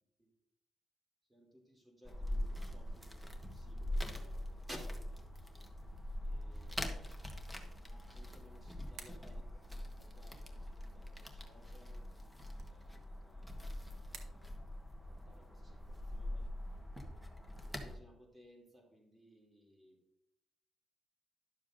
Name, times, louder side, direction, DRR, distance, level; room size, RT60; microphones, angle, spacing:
voice 1, 1.3-4.8 5.4-5.6 6.2-7.2 7.8-12.0 12.7-14.7 15.1-16.5 17.6-20.0, equal, 15° right, 0 dB, 2.9 m, -60 dB
sound 1, 2.0-18.0, left 1 dB, ahead, 1.2 m, -43 dB
sound 2, 18.6-18.7, right 6 dB, 70° right, 1.1 m, -63 dB
11.0 x 6.9 x 2.6 m, 0.81 s
cardioid pair, 90°, 0 cm